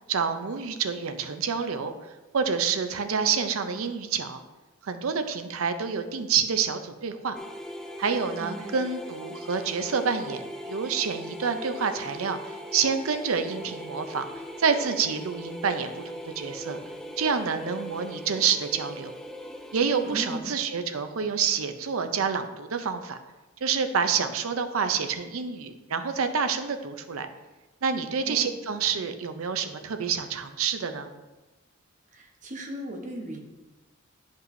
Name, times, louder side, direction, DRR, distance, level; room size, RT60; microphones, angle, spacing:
voice 1, 0.1-1.9 2.3-4.4 4.8-7.4 8.0-14.3 14.6-16.0 16.4-16.8 17.2-19.1 19.7-23.2 23.6-27.3 27.8-31.1, right 6 dB, 80° right, 8 dB, 0.6 m, -28 dB
sound 1, 7.3-20.4, equal, ahead, 0.3 m, -40 dB
voice 2, 8.4-8.8 20.0-20.5 28.3-28.5 32.1-33.4, right 1 dB, 40° right, 2 dB, 0.9 m, -37 dB
9.7 x 5.3 x 2.6 m, 1.1 s
head